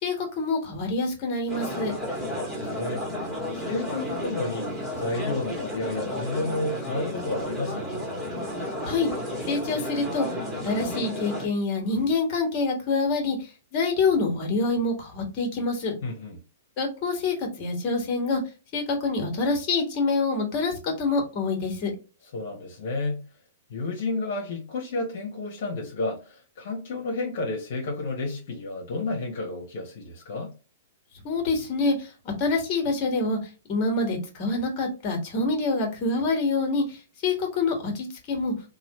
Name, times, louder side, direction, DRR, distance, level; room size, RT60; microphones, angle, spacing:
voice 1, 0.0-1.9 8.9-9.1 9.5-10.3 10.6-13.4 13.7-15.9 16.8-18.4 18.7-21.9 31.2-32.1 32.4-33.4 33.7-37.0 37.2-38.5, left 3 dB, 40° left, 1.5 m, -26 dB
sound 1, 1.5-11.5, left 1 dB, 10° right, 1.4 m, -32 dB
voice 2, 2.2-3.0 3.5-8.1 16.0-16.4 22.3-23.2 23.7-30.5, left 2 dB, 60° left, 1.1 m, -31 dB
3.0 x 2.3 x 2.9 m
hypercardioid pair, 125°, 0 cm